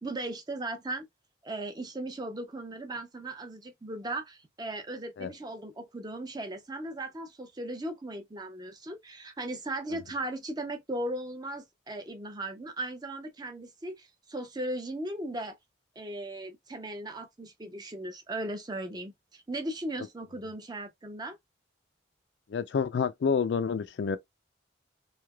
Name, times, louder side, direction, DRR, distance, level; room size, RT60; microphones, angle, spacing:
voice 1, 0.0-1.1 1.4-15.6 16.0-21.4, right 1 dB, 20° right, 0.5 m, -37 dB
voice 2, 22.5-24.2, left 6 dB, 65° left, 0.4 m, -28 dB
3.2 x 2.8 x 2.2 m
head